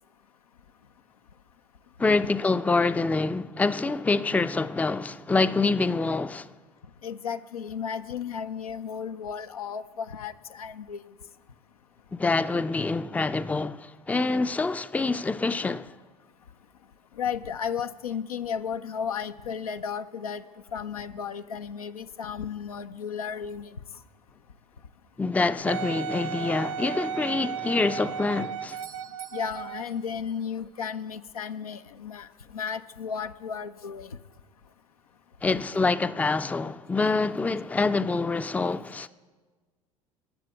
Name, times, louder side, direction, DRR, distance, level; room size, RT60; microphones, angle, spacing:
voice 1, 2.0-6.5 12.1-15.9 25.2-28.8 35.4-39.1, left 3 dB, 10° left, 0.5 m, -26 dB
voice 2, 7.0-11.0 17.1-20.4 20.7-23.8 29.3-34.2 35.5-35.6 38.9-39.1, left 7 dB, 80° left, 0.7 m, -34 dB
Wind instrument woodwind instrument, 25.7-30.0 30.6-30.7, right 8 dB, 55° right, 0.5 m, -35 dB
Doorbell, 28.7-30.5 34.6-34.7, right 10 dB, 75° right, 1.4 m, -51 dB
20.0 x 7.5 x 9.2 m
figure-of-eight pair, 70°, 19 cm